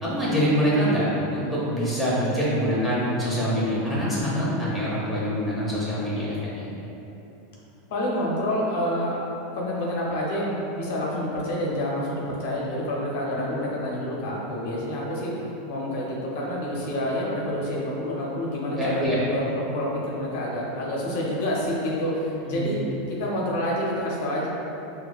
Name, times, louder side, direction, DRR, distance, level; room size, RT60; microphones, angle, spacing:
voice 1, 0.0-1.1 1.3-6.7 13.3-13.4 18.7-19.2 22.4-22.7, equal, 5° right, -9 dB, 1.0 m, -25 dB
voice 2, 7.9-9.2 9.5-15.3 15.7-22.8 23.2-24.5, left 1 dB, 70° left, -4 dB, 0.6 m, -28 dB
4.3 x 2.1 x 2.3 m, 3.0 s
supercardioid pair, 115°, 0 cm